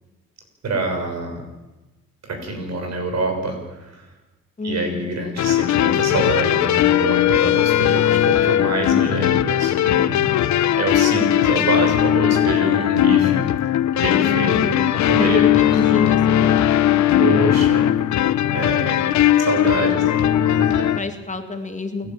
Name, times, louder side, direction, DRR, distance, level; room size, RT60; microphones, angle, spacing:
voice 1, 0.6-1.5 2.2-4.1 4.6-10.4 10.8-13.4 13.9-16.1 17.2-17.9 18.4-19.1 19.4-21.0 22.0-22.1, right 2 dB, 60° right, 4 dB, 6.7 m, -26 dB
voice 2, 4.6-5.1 14.1-14.7 15.2-17.1 19.8-20.1 20.9-22.1, left 3 dB, 25° left, 6 dB, 2.3 m, -29 dB
sound 1, 5.4-21.0, left 12 dB, 65° left, 1.0 m, -18 dB
29.0 x 11.5 x 9.1 m, 1.1 s
cardioid pair, 90°, 30 cm